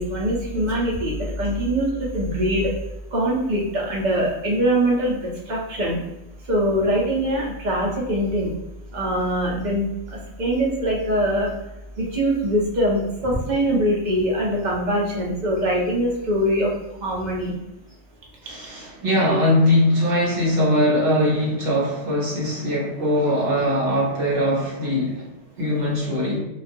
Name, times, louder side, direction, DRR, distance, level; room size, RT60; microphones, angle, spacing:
voice 1, 0.0-2.7 3.1-6.0 6.5-8.5 8.9-11.5 12.0-16.7 17.0-17.6, equal, 45° right, -3 dB, 0.7 m, -23 dB
voice 2, 18.4-25.3 25.6-26.4, left 1 dB, 65° right, -5 dB, 0.9 m, -21 dB
2.4 x 2.2 x 2.6 m, 0.91 s
omnidirectional pair, 1.3 m